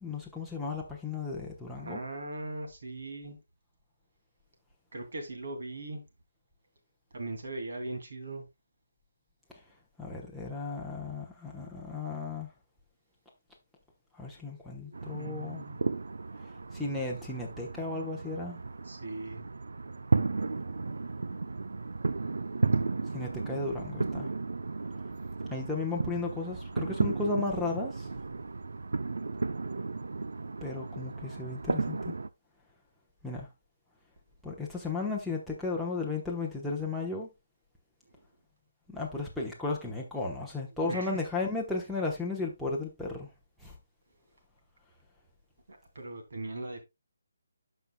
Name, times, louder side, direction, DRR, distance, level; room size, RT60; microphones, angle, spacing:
voice 1, 0.0-2.0 10.0-12.5 14.2-15.6 16.7-18.6 23.1-24.3 25.5-28.1 30.6-32.2 33.2-33.5 34.4-37.3 38.9-43.3 43.6-43.7, left 3 dB, ahead, 0.9 m, -34 dB
voice 2, 1.8-3.4 4.9-6.0 7.1-8.5 14.5-15.8 18.8-19.5 23.7-23.9 40.8-41.2 45.7-46.8, right 2 dB, 55° right, 2.5 m, -39 dB
sound 1, 14.9-32.3, right 3 dB, 80° right, 0.6 m, -34 dB
12.0 x 5.5 x 2.2 m
hypercardioid pair, 175°, 0 cm